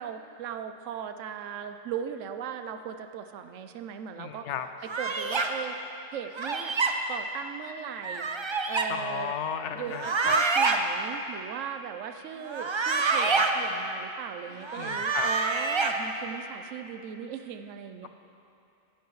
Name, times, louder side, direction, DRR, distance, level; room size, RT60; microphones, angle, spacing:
voice 1, 0.0-4.5 4.8-5.8 6.1-6.8 7.1-8.3 8.7-9.3 9.7-18.1, right 8 dB, 75° right, 8 dB, 1.0 m, -38 dB
voice 2, 4.2-4.7 8.9-10.4 14.7-15.3 18.0-18.1, left 9 dB, 70° left, 9 dB, 0.9 m, -34 dB
sound 1, 4.9-5.5 6.3-6.9 8.0-8.9 9.9-10.8 12.4-13.5 14.6-15.9, right 4 dB, 45° right, 0.3 m, -26 dB
15.5 x 10.5 x 3.1 m, 2.7 s
omnidirectional pair, 1.3 m